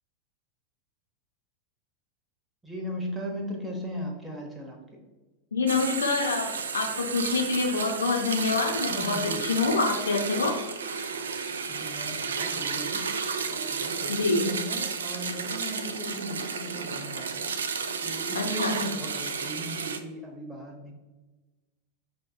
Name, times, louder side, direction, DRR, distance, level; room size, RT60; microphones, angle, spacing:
voice 1, 2.6-4.8 8.9-9.4 11.7-13.0 13.5-17.5 18.0-20.9, equal, 5° right, 0 dB, 0.9 m, -37 dB
voice 2, 5.5-10.5 14.1-14.4 18.3-18.8, left 4 dB, 70° left, 1 dB, 0.7 m, -26 dB
sound 1, 5.7-20.0, right 5 dB, 65° right, 0.3 m, -32 dB
6.3 x 2.6 x 2.3 m, 1.2 s
figure-of-eight pair, 90°, 0 cm